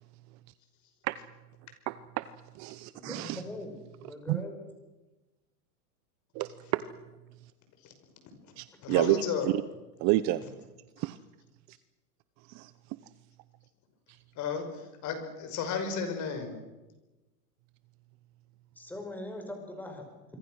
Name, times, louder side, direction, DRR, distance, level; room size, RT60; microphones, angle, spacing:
voice 1, 1.9-2.3 2.5-3.4 4.3-4.4 6.3-6.8 8.6-9.5 10.0-10.4 11.0-11.2 11.7-11.8 12.5-12.7 14.1-14.2, right 17 dB, 35° right, 15 dB, 0.8 m, -30 dB
voice 2, 2.9-3.7 4.0-4.5 18.8-20.0, left 1 dB, 5° left, 4 dB, 5.8 m, -41 dB
voice 3, 8.8-9.5 14.4-16.6, left 6 dB, 35° left, 7 dB, 5.6 m, -34 dB
26.5 x 25.0 x 6.4 m, 1.1 s
hypercardioid pair, 130°, 48 cm